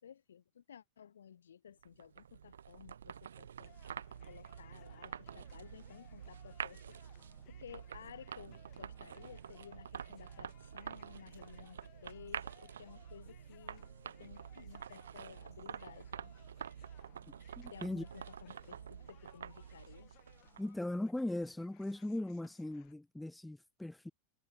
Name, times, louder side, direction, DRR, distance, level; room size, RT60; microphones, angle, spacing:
voice 1, 0.0-3.7 4.3-6.8 7.5-16.3 17.7-20.1, left 8 dB, 65° left, 1.6 m, -55 dB
sound 1, 1.8-20.9, right 8 dB, 65° right, 0.8 m, -48 dB
sound 2, 3.6-22.9, left 25 dB, 40° left, 6.4 m, -66 dB
Telephone, 8.9-14.6, left 1 dB, 85° left, 3.6 m, -73 dB
voice 2, 17.6-18.0 20.6-24.1, left 1 dB, 5° left, 0.4 m, -39 dB
figure-of-eight pair, 90°, 0 cm